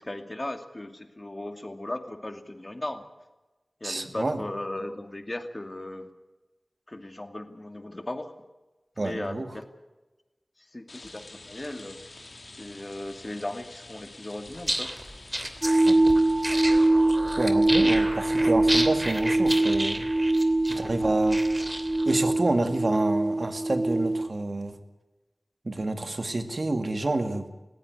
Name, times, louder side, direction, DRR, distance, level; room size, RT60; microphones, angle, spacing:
voice 1, 0.0-3.0 3.8-6.1 6.9-8.3 9.0-9.6 10.6-12.0 12.5-14.9 20.7-21.2, left 1 dB, 35° left, 7 dB, 2.4 m, -37 dB
voice 2, 3.8-4.4 9.0-9.5 15.8-16.0 17.4-20.1 20.6-21.4 22.1-24.8 25.6-27.5, right 2 dB, 60° right, 8 dB, 2.3 m, -28 dB
Rain, 10.9-16.9, left 2 dB, 70° left, 2.8 m, -47 dB
sound 1, 14.5-22.1, right 1 dB, 20° right, 2.9 m, -32 dB
sound 2, 15.6-24.3, right 2 dB, 35° right, 0.7 m, -23 dB
19.5 x 16.0 x 9.8 m, 1.1 s
wide cardioid pair, 50°, 0 cm